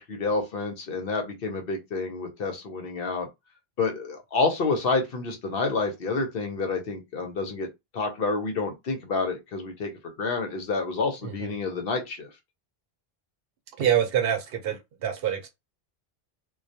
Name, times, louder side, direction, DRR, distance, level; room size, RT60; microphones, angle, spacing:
voice 1, 0.0-3.3 3.8-7.7 7.9-9.9 10.2-12.3, left 3 dB, 70° left, 0.9 m, -28 dB
voice 2, 13.8-15.5, right 9 dB, 70° right, 0.8 m, -26 dB
2.2 x 2.2 x 2.7 m
omnidirectional pair, 1.0 m